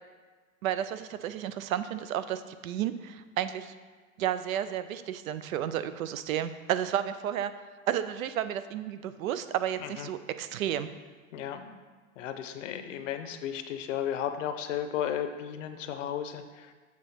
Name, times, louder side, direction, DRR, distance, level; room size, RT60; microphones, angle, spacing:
voice 1, 0.6-3.7 4.2-7.5 7.9-10.9, right 10 dB, 90° right, 12 dB, 0.6 m, -32 dB
voice 2, 11.3-11.8 12.2-16.7, left 9 dB, 65° left, 8 dB, 0.8 m, -34 dB
7.4 x 3.6 x 5.7 m, 1.4 s
supercardioid pair, 155°, 40 cm